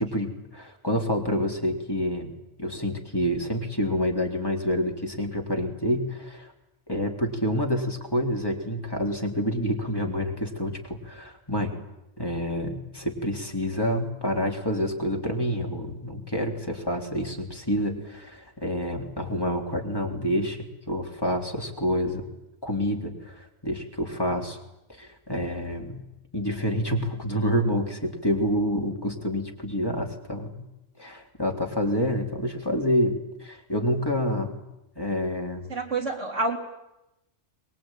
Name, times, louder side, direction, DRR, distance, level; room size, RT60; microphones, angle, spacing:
voice 1, 0.0-2.3 2.6-6.5 6.9-11.7 12.2-22.2 22.6-24.6 24.9-26.0 26.3-30.5 31.0-34.6 35.0-35.7, equal, 20° left, 1 dB, 3.6 m, -28 dB
voice 2, 35.7-36.6, right 3 dB, 75° right, 1 dB, 4.0 m, -27 dB
24.0 x 22.0 x 9.2 m, 0.90 s
omnidirectional pair, 1.3 m